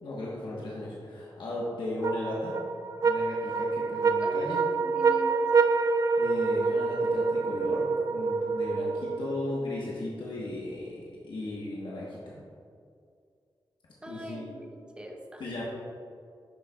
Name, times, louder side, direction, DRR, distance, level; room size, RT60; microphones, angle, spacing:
voice 1, 0.0-2.6 3.0-4.6 6.2-12.4 14.1-14.5 15.4-15.6, left 1 dB, 75° left, -6 dB, 1.2 m, -36 dB
sound 1, 2.0-9.6, right 4 dB, 40° right, 0.4 m, -27 dB
voice 2, 4.2-5.5 14.0-15.5, equal, 10° right, 2 dB, 0.7 m, -42 dB
10.5 x 6.6 x 2.4 m, 2.3 s
wide cardioid pair, 175°, 8 cm